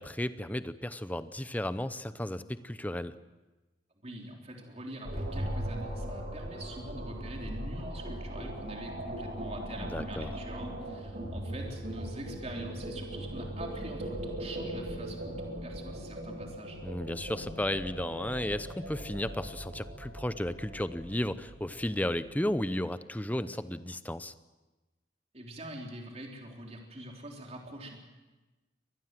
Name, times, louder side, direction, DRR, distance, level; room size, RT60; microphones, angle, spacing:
voice 1, 0.0-3.1 9.8-10.3 16.8-24.3, left 1 dB, 10° left, 13 dB, 0.7 m, -34 dB
voice 2, 4.0-16.8 25.3-28.0, right 1 dB, 35° right, 1 dB, 3.6 m, -44 dB
sound 1, 5.1-22.3, right 1 dB, 55° right, 7.9 m, -39 dB
24.5 x 19.5 x 7.7 m, 1.1 s
head